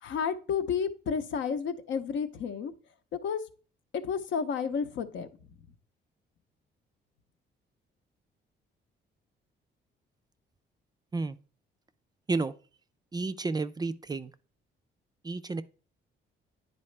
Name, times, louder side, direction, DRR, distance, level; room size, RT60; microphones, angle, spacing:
voice 1, 0.0-2.7 3.1-3.4 3.9-5.3, left 6 dB, 70° left, 0.7 m, -31 dB
voice 2, 13.1-14.3 15.2-15.6, right 3 dB, 20° right, 0.3 m, -31 dB
9.7 x 4.1 x 3.2 m
cardioid pair, 90°, 20 cm